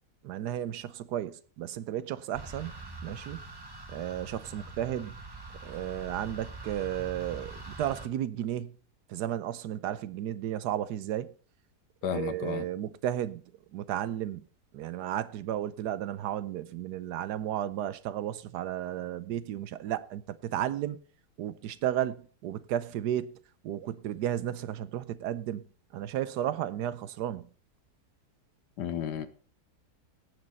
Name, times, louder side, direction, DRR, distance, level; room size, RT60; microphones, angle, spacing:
voice 1, 0.2-2.8 3.0-3.4 3.9-5.2 5.6-8.8 9.1-11.3 12.1-13.4 13.7-14.4 14.7-21.0 21.4-23.3 23.6-25.7 25.9-27.5, right 11 dB, 80° right, 1.2 m, -33 dB
sound 1, 2.3-8.1, right 2 dB, 20° right, 0.8 m, -44 dB
voice 2, 12.0-12.6 28.8-29.3, left 9 dB, 85° left, 1.5 m, -33 dB
17.5 x 6.6 x 4.1 m
omnidirectional pair, 1.8 m